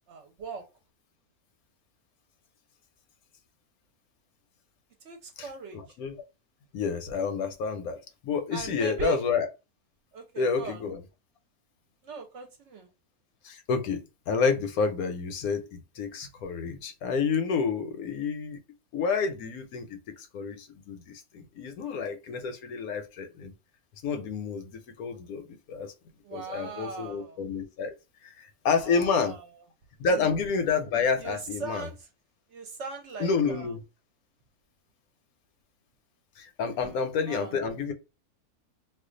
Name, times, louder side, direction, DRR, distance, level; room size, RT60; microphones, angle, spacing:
voice 1, 0.1-0.6 5.0-6.0 8.5-9.2 10.1-10.9 12.0-12.9 26.2-27.4 28.8-29.6 30.1-30.3 31.2-32.1 32.5-33.7 36.8-37.0 37.3-37.6, right 4 dB, 60° right, 0.8 m, -39 dB
voice 2, 5.4-6.2 6.7-9.5 10.4-11.0 13.4-18.6 18.9-23.5 24.0-25.9 26.3-27.9 28.2-29.4 30.0-31.9 33.2-33.8 36.4-37.9, left 5 dB, 80° left, 1.1 m, -29 dB
2.4 x 2.4 x 3.6 m
omnidirectional pair, 1.5 m